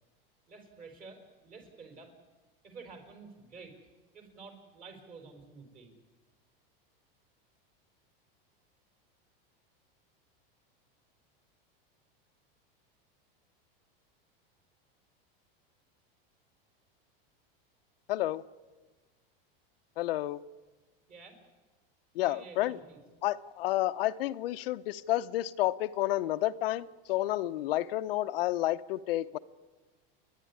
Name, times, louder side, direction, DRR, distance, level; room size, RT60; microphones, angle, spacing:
voice 1, 0.5-2.1 2.6-3.8 4.1-5.9 21.1-21.4 22.2-23.0, right 4 dB, 30° right, 4.9 m, -50 dB
voice 2, 18.1-18.4 20.0-20.4 22.1-22.8 23.2-29.4, left 15 dB, 75° left, 0.8 m, -30 dB
29.5 x 11.5 x 9.8 m
supercardioid pair, 150°, 29 cm